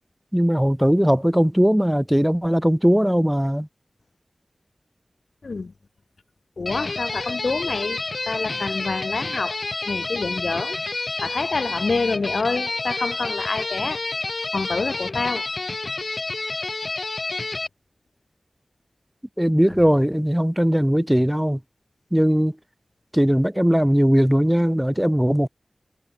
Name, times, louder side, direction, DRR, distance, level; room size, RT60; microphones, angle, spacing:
voice 1, 0.3-3.7 19.4-21.6 22.1-22.5 23.1-25.5, equal, 5° right, 0.9 m, -19 dB
voice 2, 6.6-8.0 8.3-9.6 9.8-10.8 11.2-14.0 14.5-15.5, left 4 dB, 75° left, 1.4 m, -27 dB
sound 1, 6.7-17.7, left 3 dB, 55° left, 0.9 m, -29 dB
wide cardioid pair, 60°, 0 cm